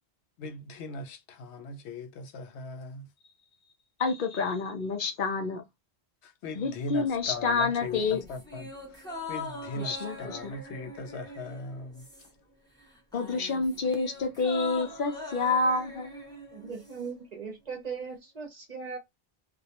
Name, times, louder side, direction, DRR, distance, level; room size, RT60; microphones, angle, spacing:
voice 1, 0.4-3.1 6.2-8.7 9.3-12.1, left 3 dB, 90° left, 0.9 m, -39 dB
voice 2, 4.0-5.6 6.6-8.2 9.8-10.5 13.1-16.1, left 4 dB, 60° left, 0.7 m, -28 dB
sound 1, 7.8-12.5 12.8-17.1 17.4-17.5, left 2 dB, 5° left, 0.6 m, -42 dB
voice 3, 16.5-19.0, right 5 dB, 45° right, 0.7 m, -38 dB
2.3 x 2.0 x 2.8 m
omnidirectional pair, 1.1 m